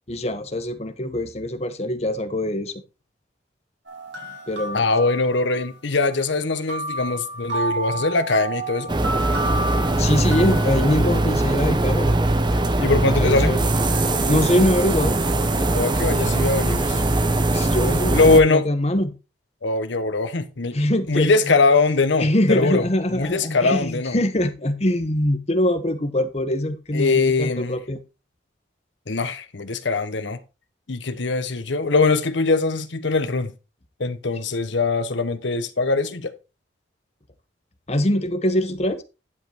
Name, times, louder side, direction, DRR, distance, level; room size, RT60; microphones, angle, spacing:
voice 1, 0.1-2.7 4.5-4.8 9.9-12.1 13.2-13.6 14.3-15.2 17.5-19.1 20.7-21.3 22.2-28.0 37.9-39.0, left 1 dB, 35° left, 1.0 m, -23 dB
sound 1, 3.9-5.7 6.7-11.0, right 2 dB, 70° right, 3.0 m, -30 dB
voice 2, 4.7-8.9 9.3-9.4 12.8-13.6 15.7-17.0 18.1-18.6 19.6-22.8 23.1-24.2 26.9-27.8 29.1-30.4 30.9-33.5 34.0-36.3, left 3 dB, 70° left, 1.0 m, -21 dB
sound 2, 8.9-18.4, right 2 dB, 25° right, 0.9 m, -21 dB
11.0 x 5.4 x 4.5 m
head